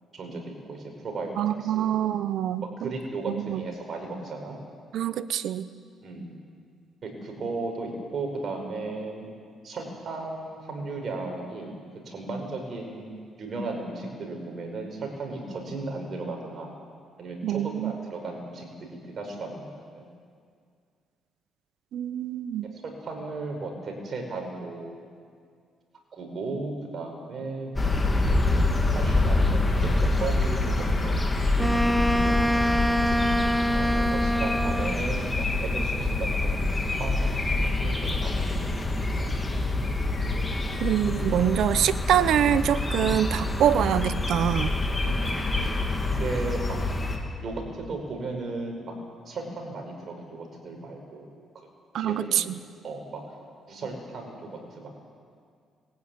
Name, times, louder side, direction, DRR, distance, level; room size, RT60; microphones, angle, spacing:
voice 1, 0.1-2.1 2.8-4.6 6.0-6.3 7.0-9.3 9.6-11.8 12.1-16.7 17.2-19.7 19.9-20.1 22.8-25.0 26.1-28.0 28.9-32.5 33.7-39.0 43.0-43.2 45.0-45.3 46.2-46.8 47.4-48.8 49.2-51.3 51.5-51.7 52.0-52.5 52.8-53.2 53.7-54.9, right 3 dB, 50° right, 2 dB, 5.7 m, -35 dB
voice 2, 1.4-2.9 3.3-3.6 4.9-5.7 17.4-17.9 21.9-22.7 40.8-44.7 51.9-52.4, right 10 dB, 75° right, 13 dB, 0.8 m, -25 dB
sound 1, 27.8-47.2, left 2 dB, 20° left, 3.0 m, -26 dB
Wind instrument woodwind instrument, 31.6-35.1, equal, ahead, 0.6 m, -25 dB
21.0 x 15.5 x 9.6 m, 2.2 s
cardioid pair, 90°, 0 cm